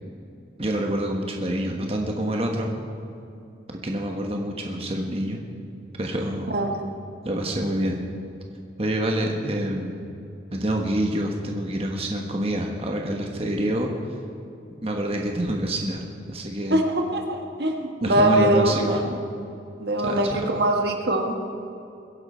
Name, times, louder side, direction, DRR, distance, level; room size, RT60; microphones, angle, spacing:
voice 1, 0.6-2.7 3.7-5.4 6.0-6.5 7.2-8.0 8.8-10.0 10.5-13.9 14.8-16.0 16.3-16.8 18.0-19.0 20.0-20.5, right 1 dB, 30° right, 1 dB, 1.3 m, -27 dB
voice 2, 6.5-6.8 16.7-19.1 19.8-21.4, right 1 dB, 65° right, 3 dB, 1.4 m, -22 dB
22.0 x 10.5 x 4.5 m, 2.7 s
head